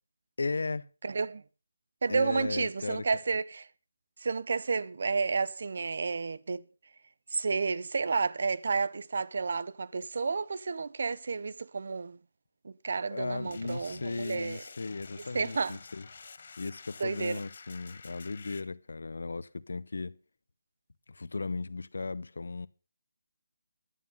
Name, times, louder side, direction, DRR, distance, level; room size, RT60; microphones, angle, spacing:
voice 1, 0.4-0.9 2.1-3.0 13.1-16.1 16.6-20.2 21.1-22.7, left 3 dB, 75° left, 0.6 m, -36 dB
voice 2, 1.0-1.4 2.0-3.7 4.2-6.7 7.3-12.2 12.6-14.6 15.2-15.8 17.0-17.4, right 4 dB, 60° right, 0.6 m, -31 dB
sound 1, 13.4-18.6, left 5 dB, 55° left, 1.0 m, -49 dB
11.0 x 9.3 x 5.4 m
figure-of-eight pair, 155°, 0 cm